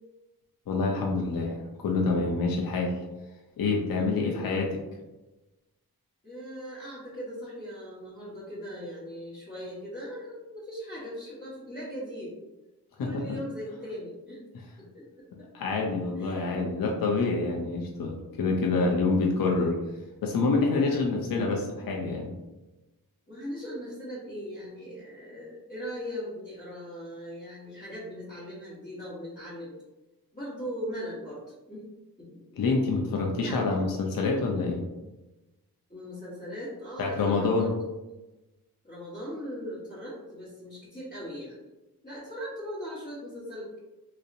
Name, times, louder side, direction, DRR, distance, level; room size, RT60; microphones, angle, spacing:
voice 1, 0.7-3.0 3.6-4.7 13.0-13.2 15.4-19.8 20.2-22.3 32.6-34.8 37.0-37.7, left 3 dB, 65° left, 0 dB, 0.5 m, -27 dB
voice 2, 3.9-4.6 6.2-12.4 13.0-14.4 14.8-15.3 16.2-16.6 20.9-21.1 23.3-29.7 30.3-31.8 32.2-32.6 33.4-33.7 35.9-37.7 38.8-41.6 42.0-43.8, equal, 25° left, -11 dB, 1.0 m, -39 dB
2.7 x 2.0 x 2.5 m, 1.1 s
cardioid pair, 50°, 38 cm